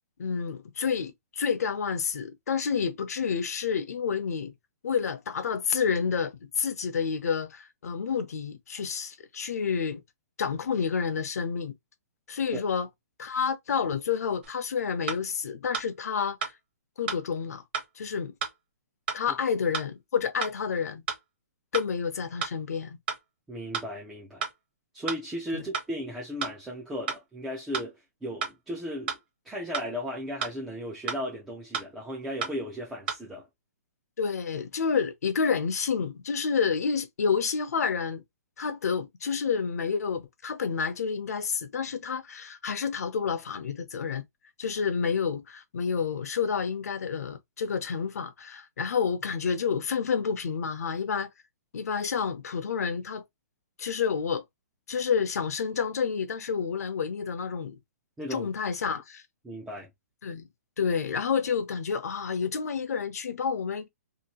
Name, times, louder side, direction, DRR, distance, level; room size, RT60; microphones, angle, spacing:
voice 1, 0.2-4.5 4.8-10.0 10.4-11.7 12.3-12.9 13.2-16.5 17.0-17.6 18.0-18.3 19.1-21.0 21.7-23.0 25.5-25.6 34.2-38.2 38.6-44.2 44.6-51.3 51.7-53.2 53.8-54.4 54.9-57.8 58.3-59.2 60.2-60.5 60.8-63.9, left 6 dB, 70° left, 0.7 m, -29 dB
sound 1, 14.4-14.5 15.1-15.2 15.7-15.9 16.4-16.5 17.1-17.2 17.7-17.9 18.4-18.5 19.1-19.2 19.7-19.9 20.4-20.5 21.1-21.2 21.7-21.9 22.4-22.5 23.1-23.2 23.7-23.9 24.4-24.5 25.1-25.2 25.7-25.9 26.4-26.5 27.1-27.2 27.7-27.9 28.4-28.5 29.1-29.2 29.7-29.9 30.4-30.5 31.1-31.2 31.7-31.9 32.4-32.5 33.1-33.2, right 6 dB, 35° right, 0.8 m, -31 dB
voice 2, 23.5-24.4 24.9-29.2 29.4-33.5 58.2-58.5 59.4-59.9, equal, 5° right, 0.3 m, -36 dB
2.8 x 2.6 x 2.8 m
hypercardioid pair, 175°, 9 cm